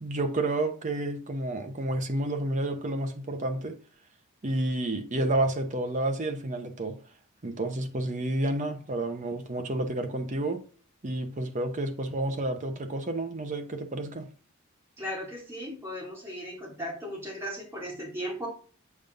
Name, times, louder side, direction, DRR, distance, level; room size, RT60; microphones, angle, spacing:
voice 1, 0.0-3.8 4.4-7.0 7.4-10.6 11.0-14.3, right 1 dB, 35° right, 0.8 m, -30 dB
voice 2, 15.0-18.5, equal, 10° right, 2.5 m, -36 dB
7.3 x 5.0 x 2.6 m
head